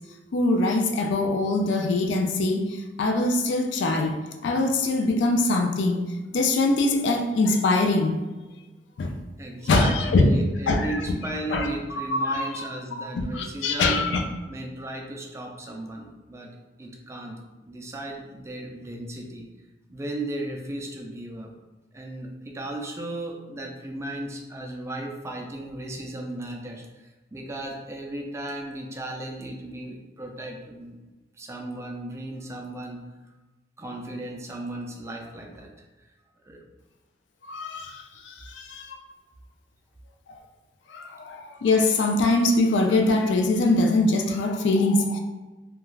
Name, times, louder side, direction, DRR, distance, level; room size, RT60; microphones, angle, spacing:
voice 1, 0.3-4.1 4.4-6.0 6.3-8.2 9.0-9.1 9.7-10.3 10.7-10.9 11.5-12.6 13.1-14.2 37.4-39.0 40.9-45.2, left 2 dB, 90° left, 4 dB, 0.4 m, -23 dB
voice 2, 9.4-14.0 14.5-19.5 19.9-21.5 21.9-31.0 31.4-33.1 33.8-35.7 36.5-36.6, right 1 dB, 15° right, 1 dB, 0.3 m, -36 dB
2.3 x 2.2 x 3.1 m, 1.2 s
head